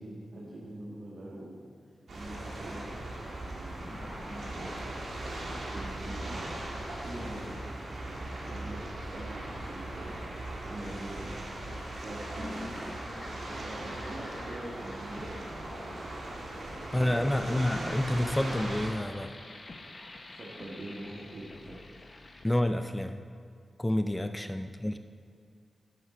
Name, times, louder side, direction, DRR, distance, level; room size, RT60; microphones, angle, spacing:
voice 1, 0.0-1.6 2.1-2.9 3.5-4.8 5.2-6.4 7.0-11.3 12.0-12.7 13.3-15.5 16.4-17.4 20.3-21.8 24.0-24.4, right 1 dB, 55° right, -6 dB, 1.8 m, -44 dB
sound 1, 2.1-18.9, right 2 dB, 75° right, 2.0 m, -39 dB
sound 2, 3.4-22.5, left 2 dB, 40° left, 0.9 m, -48 dB
voice 2, 16.9-19.3 22.4-23.2 23.8-25.0, left 1 dB, 10° left, 8 dB, 0.4 m, -29 dB
11.0 x 8.1 x 4.4 m, 2.1 s
wide cardioid pair, 85°, 0 cm